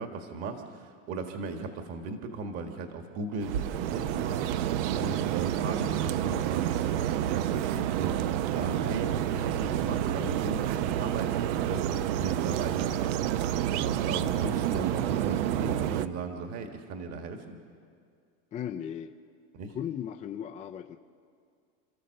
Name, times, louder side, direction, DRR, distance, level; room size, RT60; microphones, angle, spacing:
voice 1, 0.0-13.1 13.7-17.6 19.5-19.8, right 4 dB, 40° right, 5 dB, 1.8 m, -37 dB
sound 1, 3.4-16.1, right 11 dB, 65° right, 0.8 m, -29 dB
voice 2, 18.5-19.1 19.7-21.0, left 9 dB, 20° left, 3 dB, 0.4 m, -36 dB
29.0 x 13.5 x 6.6 m, 2.3 s
supercardioid pair, 150°, 38 cm